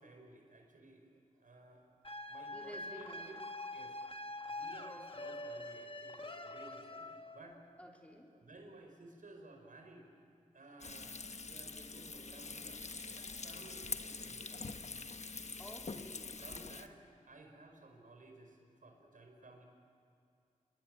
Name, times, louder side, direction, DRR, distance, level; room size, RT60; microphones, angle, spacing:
voice 1, 0.0-1.8 2.3-3.1 3.7-7.6 8.3-10.1 10.5-14.8 16.3-17.0 17.2-19.6, right 2 dB, 80° right, 3 dB, 4.9 m, -56 dB
sound 1, 2.0-7.6, left 2 dB, 40° left, 1.6 m, -45 dB
voice 2, 2.5-3.4 7.8-8.3 15.6-16.4, equal, 10° left, 0 dB, 3.8 m, -52 dB
Frying (food), 10.8-16.9, left 4 dB, 55° left, 1.2 m, -45 dB
28.5 x 22.0 x 9.1 m, 2.4 s
wide cardioid pair, 75°, 14 cm